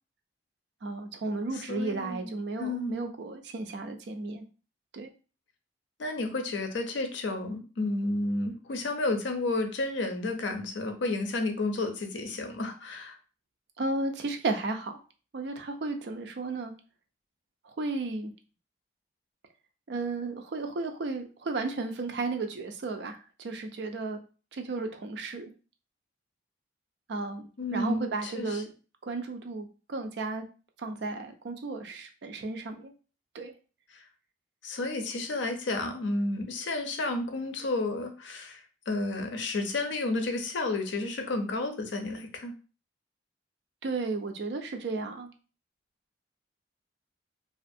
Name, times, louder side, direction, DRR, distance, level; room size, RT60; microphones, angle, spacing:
voice 1, 0.8-4.5 4.9-5.1 13.8-15.0 15.3-16.7 17.6-18.3 19.9-24.2 24.5-25.5 27.1-28.7 29.0-30.4 30.8-32.9 33.3-33.5 43.8-45.3, right 3 dB, 70° right, 5 dB, 0.4 m, -34 dB
voice 2, 1.5-2.3 2.6-3.1 6.0-13.2 27.6-28.6 33.9-34.0 34.6-42.5, left 2 dB, 85° left, 5 dB, 0.5 m, -31 dB
2.5 x 2.4 x 2.6 m, 0.36 s
head